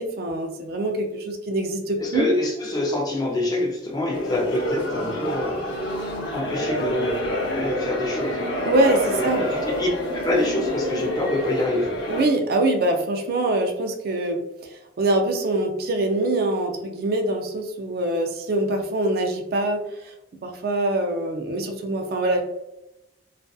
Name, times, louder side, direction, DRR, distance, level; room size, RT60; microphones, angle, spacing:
voice 1, 0.0-2.3 8.7-9.4 12.1-14.4 14.7-19.8 20.4-22.4, right 1 dB, 55° right, 5 dB, 0.3 m, -24 dB
voice 2, 2.0-5.6 6.3-7.2 7.6-8.4 9.2-9.9 10.1-11.9, left 2 dB, 20° left, 0 dB, 0.4 m, -26 dB
sound 1, 4.1-12.2, equal, 70° left, 0.7 m, -27 dB
2.5 x 2.4 x 2.3 m, 0.93 s
head